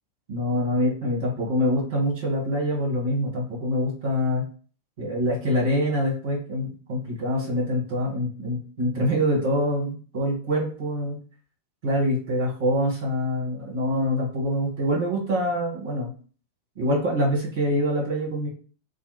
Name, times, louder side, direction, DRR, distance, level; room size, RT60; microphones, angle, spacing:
voice 1, 0.3-4.5 5.0-11.2 11.8-16.1 16.7-18.5, equal, 50° right, -3 dB, 1.6 m, -25 dB
3.2 x 2.4 x 3.1 m, 0.41 s
figure-of-eight pair, 90°, 0 cm